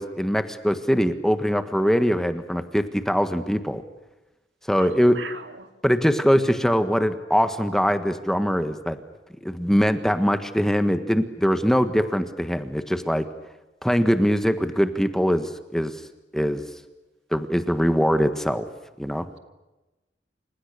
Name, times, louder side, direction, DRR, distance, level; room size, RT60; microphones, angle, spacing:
voice 1, 0.0-3.8 4.7-5.2 5.8-9.0 9.4-13.2 13.8-15.9 16.3-16.6 17.3-18.6 19.0-19.2, equal, 5° left, 9 dB, 1.5 m, -22 dB
voice 2, 4.8-5.7, right 5 dB, 70° right, 7 dB, 2.7 m, -39 dB
29.5 x 27.0 x 6.7 m, 1.0 s
head